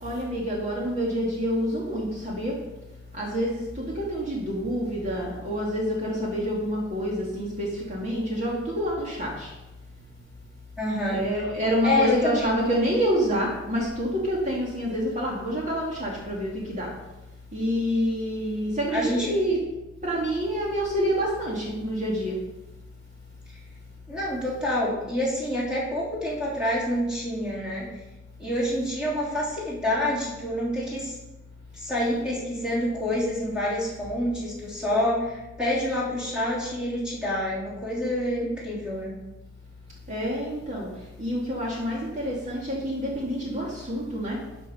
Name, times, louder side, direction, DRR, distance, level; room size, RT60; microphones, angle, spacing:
voice 1, 0.0-2.6 3.1-9.5 11.1-16.9 17.5-19.6 20.0-22.4 40.1-40.9 41.2-44.4, equal, 35° right, -3 dB, 2.0 m, -27 dB
voice 2, 10.8-11.2 11.8-12.6 18.9-19.4 24.1-27.9 28.4-31.1 31.7-39.1, left 1 dB, 5° right, -7 dB, 3.2 m, -27 dB
12.5 x 5.5 x 5.4 m, 1.0 s
head